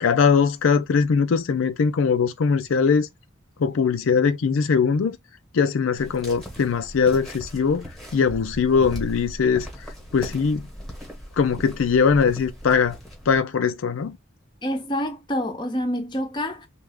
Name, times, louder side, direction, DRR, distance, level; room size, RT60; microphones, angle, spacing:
voice 1, 0.0-3.1 3.6-5.2 5.5-9.7 10.1-10.7 11.4-13.0 13.3-14.2, left 5 dB, 75° left, 0.4 m, -21 dB
sound 1, 6.0-13.4, equal, ahead, 1.1 m, -38 dB
voice 2, 14.6-16.7, equal, 20° left, 0.7 m, -27 dB
3.2 x 2.4 x 3.5 m
head